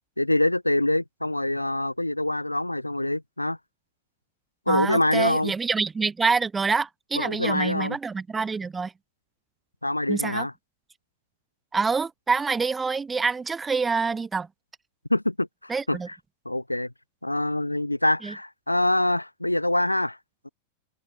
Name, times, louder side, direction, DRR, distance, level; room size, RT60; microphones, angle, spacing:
voice 1, 0.2-3.6 4.7-5.5 7.2-8.0 9.8-10.5 15.1-15.5 15.9-16.0 16.5-16.9 17.2-20.2 20.4-20.5, left 1 dB, 85° left, 2.4 m, -25 dB
voice 2, 4.7-8.9 10.1-10.5 11.7-14.5 15.7-16.1 18.2-18.3, right 4 dB, 15° right, 4.7 m, -26 dB
figure-of-eight pair, 90°, 0 cm